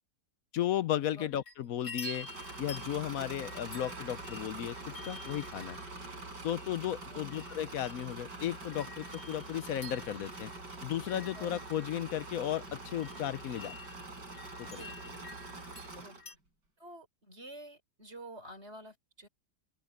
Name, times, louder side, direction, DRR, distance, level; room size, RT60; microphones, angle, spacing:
voice 1, 0.5-2.3 2.6-5.8 6.4-10.5 10.8-13.7 14.6-14.8, left 11 dB, 65° left, 1.0 m, -35 dB
sound 1, 1.2-1.5 1.8-16.3, left 2 dB, 90° left, 7.8 m, -50 dB
Engine / Mechanisms, 2.0-16.3, right 2 dB, 70° right, 8.0 m, -45 dB
voice 2, 7.1-7.5 11.3-11.6 14.8-15.2 16.0-16.2 16.8-19.3, right 1 dB, 35° right, 4.9 m, -49 dB
open air
omnidirectional pair, 1.9 m